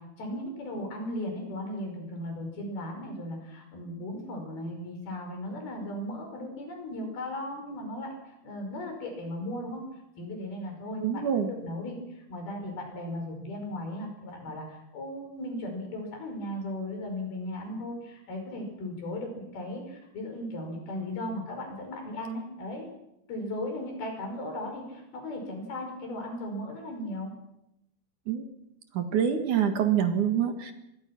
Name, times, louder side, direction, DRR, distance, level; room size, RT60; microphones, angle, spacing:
voice 1, 0.0-9.9 10.2-11.2 11.5-22.9 23.3-27.3, left 1 dB, 80° left, 3 dB, 7.4 m, -37 dB
voice 2, 11.0-11.5 28.3-28.4 28.9-30.7, right 8 dB, 60° right, 6 dB, 3.1 m, -26 dB
25.5 x 22.0 x 6.1 m, 0.84 s
omnidirectional pair, 4.3 m